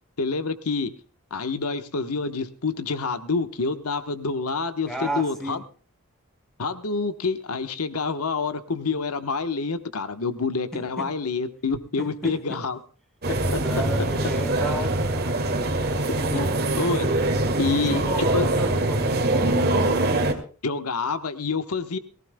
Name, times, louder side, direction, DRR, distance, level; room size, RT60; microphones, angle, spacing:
voice 1, 0.2-0.9 1.3-4.9 5.2-5.6 6.6-12.8 13.5-13.6 16.3-16.5 16.8-17.1 17.6-18.0 18.3-18.4 20.6-22.0, left 4 dB, 85° left, 10 dB, 1.1 m, -27 dB
voice 2, 4.9-5.6 10.7-11.1 12.0-12.6 13.6-15.4 16.1-16.6 17.4-19.9, right 1 dB, ahead, 3 dB, 3.5 m, -33 dB
sound 1, 13.2-20.3, right 2 dB, 45° right, 2.2 m, -23 dB
23.0 x 16.0 x 2.2 m, 0.39 s
head